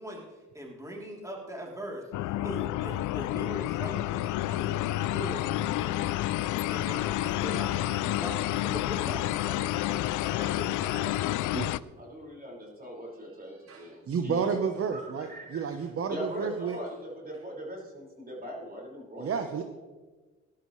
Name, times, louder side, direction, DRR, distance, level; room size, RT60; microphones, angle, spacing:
voice 1, 0.0-11.4, equal, 10° right, -2 dB, 3.2 m, -41 dB
sound 1, 2.1-11.8, left 15 dB, 80° left, 0.5 m, -29 dB
voice 2, 12.0-14.6 14.9-15.6 16.1-19.3, equal, 30° right, -2 dB, 5.2 m, -40 dB
voice 3, 13.7-16.8 19.2-19.6, right 6 dB, 50° right, 7 dB, 1.0 m, -31 dB
19.0 x 11.5 x 3.2 m, 1.3 s
cardioid pair, 90°, 30 cm